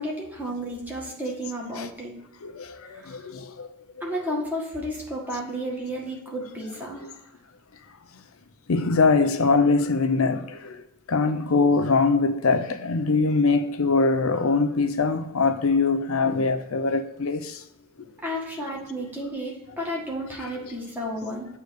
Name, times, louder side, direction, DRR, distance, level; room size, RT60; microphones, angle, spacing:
voice 1, 0.0-2.1 2.9-3.2 4.0-7.2 18.2-21.5, equal, 10° right, 1.7 m, -32 dB
voice 2, 2.4-3.7 7.0-7.1 8.7-10.7 11.1-17.6, left 4 dB, 65° left, 0.6 m, -22 dB
8.2 x 3.4 x 6.4 m
head